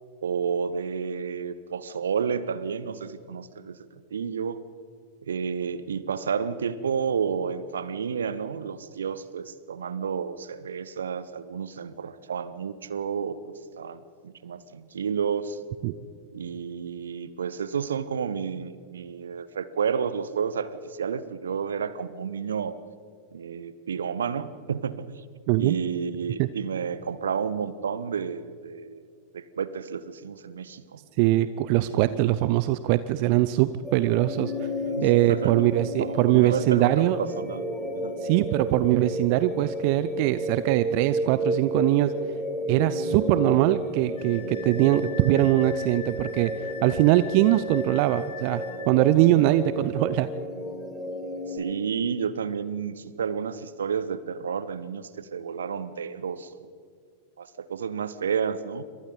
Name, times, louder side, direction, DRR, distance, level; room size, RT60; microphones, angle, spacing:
voice 1, 0.2-4.6 5.3-15.6 16.3-22.8 23.3-25.1 25.6-29.1 29.3-31.0 31.8-32.3 34.8-35.5 36.0-37.6 37.9-38.1 49.3-49.4 51.5-56.5 57.4-58.8, right 6 dB, 70° right, 16 dB, 1.0 m, -31 dB
voice 2, 31.2-34.7 35.0-37.2 38.2-42.1 42.7-50.3, right 15 dB, 45° right, 15 dB, 0.6 m, -22 dB
sound 1, 33.8-51.6, equal, ahead, 5.7 m, -32 dB
Wind instrument woodwind instrument, 44.2-48.9, left 6 dB, 60° left, 1.9 m, -43 dB
27.5 x 25.0 x 3.9 m, 2.2 s
figure-of-eight pair, 90°, 0 cm